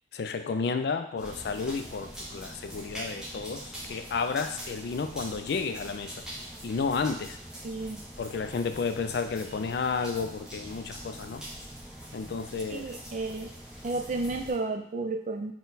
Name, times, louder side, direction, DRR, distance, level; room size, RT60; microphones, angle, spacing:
voice 1, 0.1-6.1 6.6-7.4 8.2-11.4 12.1-12.9, left 5 dB, 60° left, 8 dB, 0.3 m, -32 dB
sound 1, 1.2-14.5, equal, 5° right, 0.6 m, -43 dB
voice 2, 7.6-8.0 12.7-13.5 13.8-15.5, right 3 dB, 40° right, 4 dB, 0.4 m, -32 dB
4.1 x 2.2 x 3.9 m, 0.71 s
head